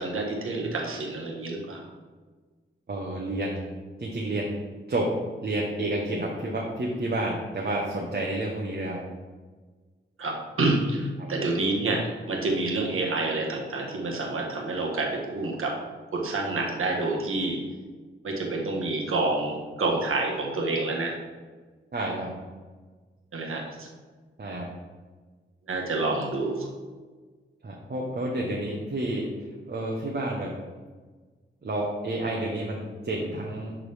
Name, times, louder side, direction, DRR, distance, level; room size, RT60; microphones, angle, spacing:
voice 1, 0.0-1.8 10.2-15.8 16.1-17.6 18.2-21.2 23.3-23.9 25.7-26.7, right 2 dB, 85° right, 0 dB, 1.4 m, -28 dB
voice 2, 2.9-3.7 4.0-4.6 4.9-5.1 5.4-9.0 11.2-11.3 21.9-22.3 24.4-24.7 27.6-29.3 29.7-30.6 31.6-33.8, right 1 dB, 50° right, -2 dB, 1.1 m, -30 dB
11.0 x 3.8 x 3.4 m, 1.4 s
cardioid pair, 70°, 21 cm